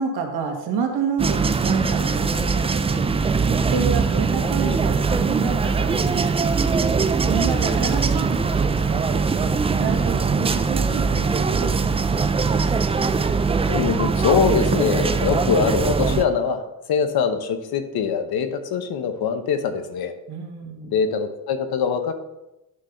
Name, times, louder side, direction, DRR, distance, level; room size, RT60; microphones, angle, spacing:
voice 1, 0.0-6.9 7.3-12.4 20.3-20.9, right 5 dB, 70° right, 3 dB, 1.8 m, -29 dB
sound 1, 1.2-16.2, right 5 dB, 15° right, 0.3 m, -21 dB
voice 2, 13.7-16.6 16.9-20.1 20.8-22.1, left 6 dB, 65° left, 8 dB, 1.1 m, -23 dB
9.6 x 4.0 x 5.8 m, 0.95 s
cardioid pair, 115°, 40 cm